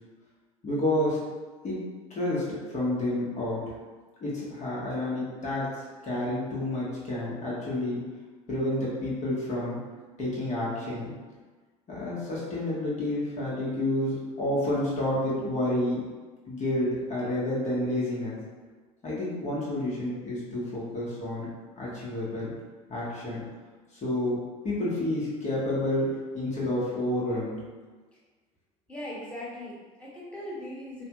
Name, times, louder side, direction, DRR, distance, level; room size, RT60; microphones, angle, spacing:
voice 1, 0.6-1.2 1.6-1.8 2.1-3.6 4.2-5.7 6.0-8.0 8.5-9.8 10.2-11.1 11.9-16.0 16.5-18.4 19.0-21.5 21.8-22.5 22.9-23.4 23.9-24.4 24.6-27.6, left 1 dB, 40° left, -7 dB, 1.3 m, -29 dB
voice 2, 28.9-31.1, left 1 dB, 5° left, -7 dB, 1.4 m, -39 dB
3.1 x 2.3 x 3.0 m, 1.3 s
hypercardioid pair, 70°, 19 cm